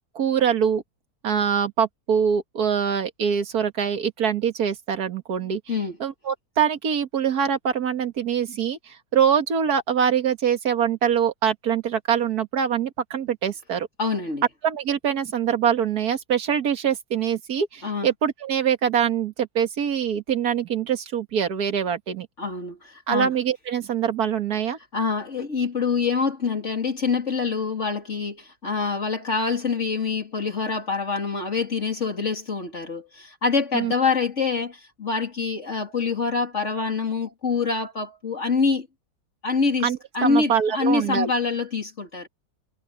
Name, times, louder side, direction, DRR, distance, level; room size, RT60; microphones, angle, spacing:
voice 1, 0.2-0.8 1.2-5.6 6.0-13.9 14.6-22.3 23.1-24.8 33.7-33.9 39.8-41.3, right 8 dB, 75° right, 2.1 m, -24 dB
voice 2, 5.4-6.0 14.0-14.4 17.8-18.1 22.4-23.3 24.9-38.9 39.4-42.3, left 4 dB, 45° left, 3.2 m, -25 dB
omnidirectional pair, 1.7 m